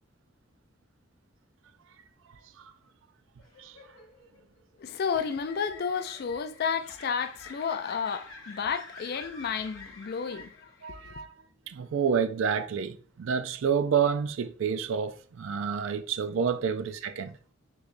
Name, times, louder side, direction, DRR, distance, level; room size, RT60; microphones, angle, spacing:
sound 1, 3.4-11.0, left 3 dB, 75° left, 0.8 m, -49 dB
voice 1, 4.8-10.7 11.0-11.3, left 6 dB, 50° left, 0.3 m, -32 dB
voice 2, 10.8-11.3 11.7-17.4, right 7 dB, 70° right, 0.4 m, -29 dB
3.7 x 3.1 x 2.6 m
head